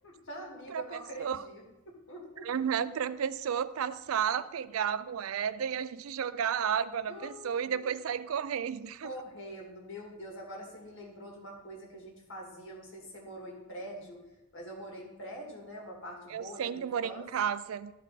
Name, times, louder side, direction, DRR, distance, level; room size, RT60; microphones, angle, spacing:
voice 1, 0.0-2.5 7.1-7.8 9.0-14.2 14.5-17.2, equal, 65° left, 0 dB, 1.9 m, -44 dB
voice 2, 2.4-9.1 16.3-17.9, right 8 dB, 80° right, 15 dB, 0.4 m, -32 dB
12.0 x 4.2 x 4.0 m, 0.97 s
head